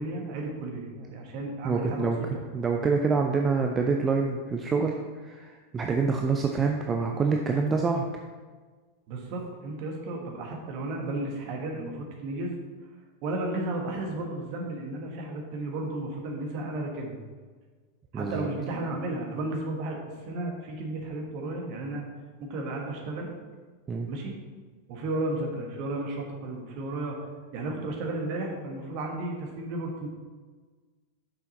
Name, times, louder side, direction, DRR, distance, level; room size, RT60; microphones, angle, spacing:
voice 1, 0.0-2.1 9.1-12.5 13.2-17.2 18.1-20.0 20.3-22.1 22.4-23.3 24.1-24.4 24.9-27.2 27.5-30.1, right 2 dB, 45° right, 1 dB, 1.4 m, -33 dB
voice 2, 1.6-5.0 5.2-8.1 18.1-18.5 23.9-24.1, right 4 dB, 20° right, 2 dB, 0.5 m, -26 dB
6.7 x 5.7 x 4.1 m, 1.4 s
figure-of-eight pair, 90°, 0 cm